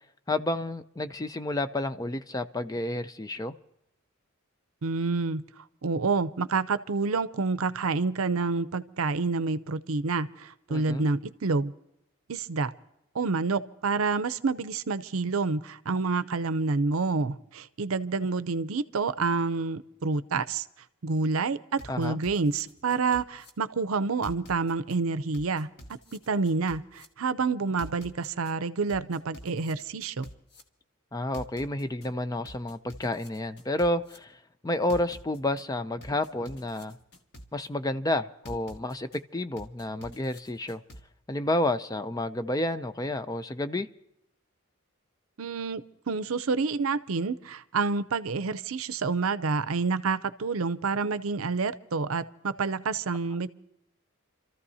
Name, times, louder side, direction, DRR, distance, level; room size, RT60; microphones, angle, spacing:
voice 1, 0.3-3.5 10.7-11.1 21.9-22.2 31.1-37.0 37.5-40.8 41.3-43.9, left 1 dB, 15° left, 11 dB, 0.4 m, -30 dB
voice 2, 4.8-5.4 5.8-11.7 12.3-12.7 13.1-20.7 21.0-25.7 26.1-30.3 45.4-53.5, right 4 dB, 75° right, 14 dB, 0.6 m, -28 dB
sound 1, 21.8-23.5 24.2-25.0 25.3-27.0 27.8-28.5 28.9-30.6 31.3-32.1 32.4-34.2 34.9-35.6 36.0-37.7 38.4-39.2 39.6-41.0, equal, 50° left, 1.5 m, -47 dB
29.5 x 14.0 x 2.8 m, 0.79 s
head